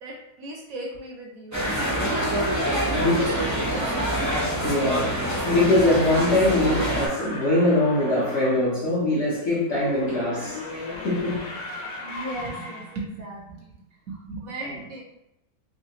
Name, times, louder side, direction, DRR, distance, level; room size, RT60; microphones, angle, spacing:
voice 1, 0.0-1.6 2.8-4.2 12.0-13.7 14.1-15.0, right 2 dB, 65° right, -2 dB, 1.0 m, -37 dB
sound 1, 1.5-7.1, right 1 dB, 25° right, 0.4 m, -25 dB
voice 2, 3.0-3.4 4.6-11.8 14.6-14.8, left 1 dB, 50° left, -6 dB, 0.9 m, -23 dB
sound 2, 6.8-8.6 9.6-13.0, left 2 dB, 90° left, 1.3 m, -36 dB
3.2 x 3.0 x 2.8 m, 0.86 s
omnidirectional pair, 1.9 m